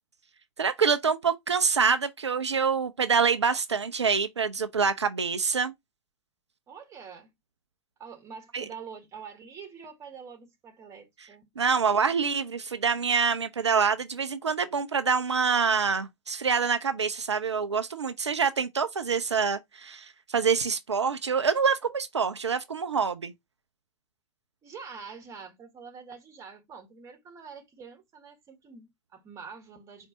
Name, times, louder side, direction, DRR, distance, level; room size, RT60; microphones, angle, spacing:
voice 1, 0.6-5.7 8.5-8.6 11.6-23.3, right 5 dB, 80° right, 0.4 m, -26 dB
voice 2, 6.7-7.3 8.0-11.5 24.6-30.1, right 6 dB, 20° right, 1.4 m, -45 dB
4.5 x 2.6 x 3.8 m
figure-of-eight pair, 100°, 14 cm